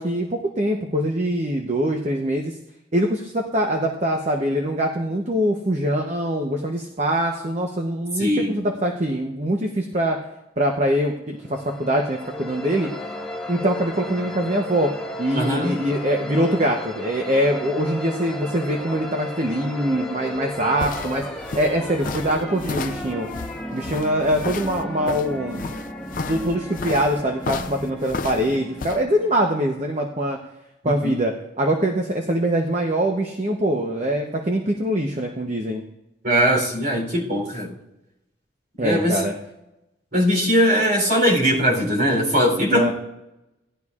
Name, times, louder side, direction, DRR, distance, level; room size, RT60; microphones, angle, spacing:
voice 1, 0.0-2.6 2.9-10.2 10.6-12.9 13.5-14.9 15.2-23.3 23.7-25.6 26.3-30.4 30.8-35.8 38.8-39.3 42.7-42.9, right 1 dB, 35° right, 2 dB, 0.8 m, -23 dB
voice 2, 8.2-8.5 15.3-15.8 30.8-31.1 36.2-37.7 38.8-39.2 40.1-42.9, equal, 50° right, -1 dB, 3.5 m, -20 dB
sound 1, 11.4-30.0, left 1 dB, 5° left, 0.9 m, -34 dB
sound 2, 20.4-29.0, left 4 dB, 40° left, 0.4 m, -32 dB
18.0 x 11.5 x 2.4 m, 0.92 s
head